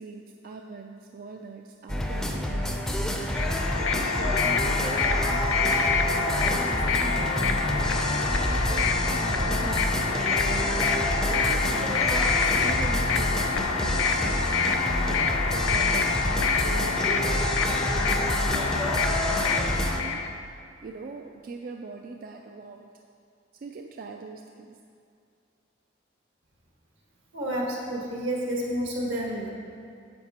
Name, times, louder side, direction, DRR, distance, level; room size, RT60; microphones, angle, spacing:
voice 1, 0.0-5.7 6.0-7.8 8.1-10.7 11.3-15.2 15.5-20.2 20.8-22.9 23.6-24.8, right 4 dB, 50° right, 3 dB, 0.3 m, -41 dB
sound 1, 1.9-20.0, equal, 5° left, 0.5 m, -28 dB
sound 2, 3.2-20.3, left 5 dB, 75° left, 0.5 m, -27 dB
voice 2, 27.3-29.5, equal, 75° right, -3 dB, 1.7 m, -30 dB
9.8 x 7.3 x 2.9 m, 2.3 s
head